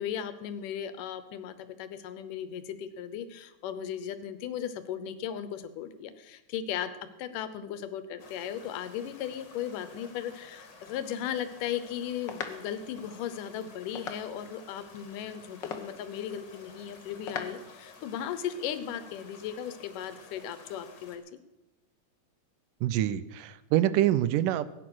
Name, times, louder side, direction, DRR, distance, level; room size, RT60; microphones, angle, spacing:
voice 1, 0.0-6.9 7.2-21.2, left 9 dB, 80° left, 12 dB, 2.5 m, -36 dB
sound 1, 8.2-21.2, left 3 dB, 45° left, 2.6 m, -52 dB
sound 2, 11.1-18.0, left 6 dB, 60° left, 1.2 m, -44 dB
voice 2, 22.8-24.7, right 12 dB, 85° right, 16 dB, 2.3 m, -26 dB
16.0 x 9.4 x 6.2 m, 1.0 s
omnidirectional pair, 3.7 m